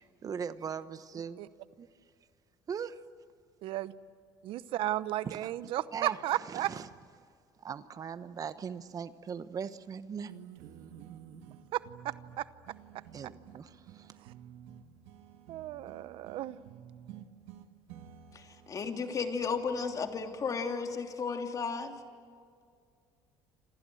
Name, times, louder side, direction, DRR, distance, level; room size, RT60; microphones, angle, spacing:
voice 1, 0.0-1.4 1.8-1.9 2.7-3.0 5.2-5.5 5.9-6.9 7.6-10.3 13.1-14.1, right 7 dB, 40° right, 12 dB, 1.1 m, -40 dB
voice 2, 3.6-3.9 4.4-6.7 11.7-12.5 15.5-16.6, right 14 dB, 70° right, 15 dB, 0.9 m, -34 dB
sound 1, 10.3-20.9, right 9 dB, 85° right, 1.6 m, -52 dB
voice 3, 18.3-22.0, left 5 dB, 40° left, 4 dB, 3.0 m, -34 dB
28.5 x 26.5 x 7.8 m, 2.2 s
cardioid pair, 105°, 9 cm